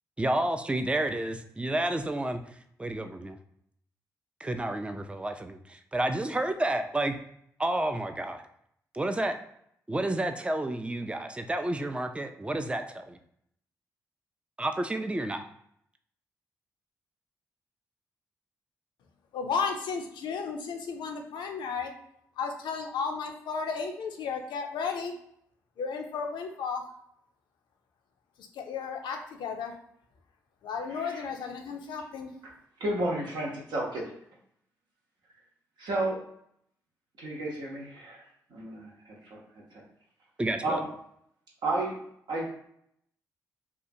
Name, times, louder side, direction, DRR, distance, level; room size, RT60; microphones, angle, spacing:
voice 1, 0.2-2.4 2.8-3.4 4.4-7.1 7.6-8.4 8.9-9.4 9.9-13.2 14.6-15.4 40.4-40.8, right 1 dB, 15° right, 7 dB, 0.4 m, -30 dB
voice 2, 19.3-21.9 22.4-25.1 25.8-26.8 28.5-29.7 30.6-32.3, left 5 dB, 70° left, 3 dB, 0.4 m, -33 dB
voice 3, 30.9-31.2 32.8-34.1 35.8-36.2 37.2-38.2 38.5-39.4 39.7-39.8 40.6-40.9 41.6-42.0 42.3-42.5, right 1 dB, 65° right, -2 dB, 0.8 m, -32 dB
2.7 x 2.4 x 2.6 m, 0.71 s
hypercardioid pair, 40°, 8 cm